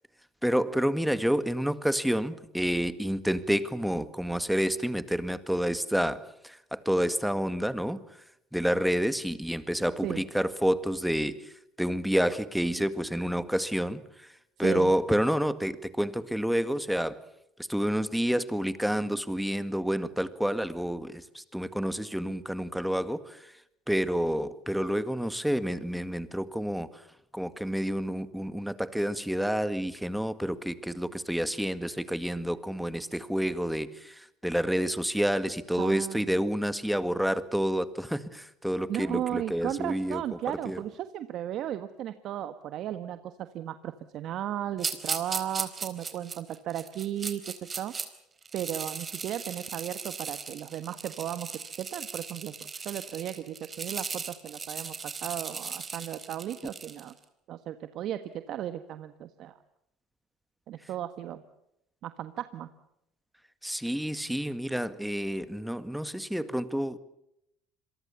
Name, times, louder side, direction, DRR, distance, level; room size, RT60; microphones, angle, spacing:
voice 1, 0.4-8.0 8.5-11.5 11.8-14.3 14.6-17.2 17.7-23.5 23.9-26.9 27.3-40.2 40.7-40.8 63.6-67.0, equal, ahead, 12 dB, 1.9 m, -29 dB
voice 2, 14.6-14.9 35.8-36.4 38.9-47.9 48.5-51.5 51.8-57.1 57.5-58.2 58.5-59.5 60.7-61.4 62.0-62.7, right 11 dB, 60° right, 10 dB, 1.4 m, -35 dB
sound 1, 44.8-48.1 48.4-57.1, right 5 dB, 30° right, 4.1 m, -37 dB
27.0 x 23.0 x 7.1 m, 0.80 s
hypercardioid pair, 80°, 0 cm